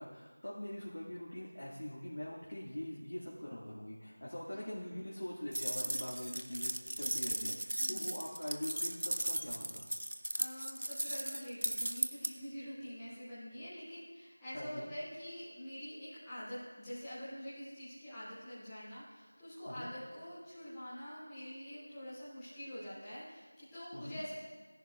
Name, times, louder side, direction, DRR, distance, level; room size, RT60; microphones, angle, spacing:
voice 1, 0.0-9.9 14.5-14.9 19.8-19.9 23.9-24.2, left 1 dB, 75° left, -5 dB, 1.8 m, -43 dB
sound 1, 5.5-12.3, right 1 dB, 50° right, 0.5 m, -37 dB
voice 2, 7.8-8.1 10.4-24.3, equal, 5° left, -16 dB, 0.9 m, -46 dB
15.5 x 10.5 x 2.3 m, 1.4 s
figure-of-eight pair, 180°, 0 cm